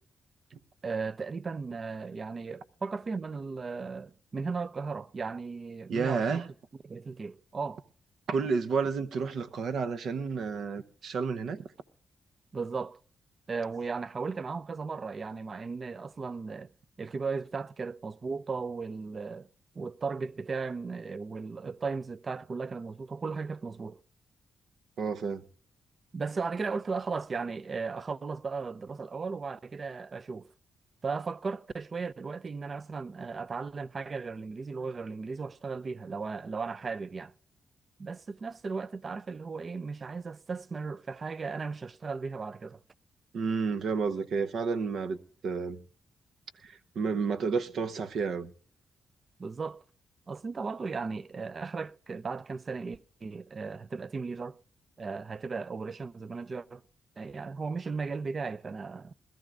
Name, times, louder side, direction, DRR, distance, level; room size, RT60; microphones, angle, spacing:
voice 1, 0.8-6.4 6.8-7.9 12.5-13.0 13.5-16.7 17.0-19.5 19.8-24.0 26.1-30.5 31.0-37.3 38.0-42.8 49.4-49.8 50.3-54.6 55.0-56.8 57.2-59.1, right 4 dB, 40° right, 0.5 m, -36 dB
voice 2, 5.9-6.5 8.3-11.6 25.0-25.4 43.3-45.2 45.4-45.8 46.6-48.5, right 5 dB, 75° right, 0.9 m, -30 dB
20.5 x 13.5 x 2.5 m
cardioid pair, 90°, 0 cm